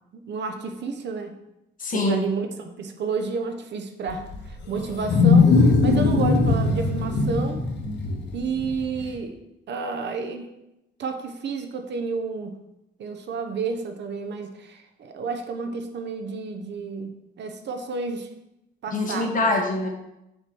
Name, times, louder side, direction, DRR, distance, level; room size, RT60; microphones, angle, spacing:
voice 1, 0.1-1.3 1.9-4.2 4.7-5.5 5.8-7.6 8.3-9.3 9.7-10.5 11.0-12.6 13.0-18.3 18.8-19.5, right 4 dB, 70° right, 6 dB, 0.9 m, -30 dB
voice 2, 1.8-2.3 18.9-19.9, left 2 dB, 45° left, 1 dB, 1.3 m, -24 dB
Wild animals, 4.1-9.1, left 3 dB, 70° left, 1.1 m, -20 dB
6.7 x 4.5 x 4.6 m, 0.88 s
wide cardioid pair, 150°, 19 cm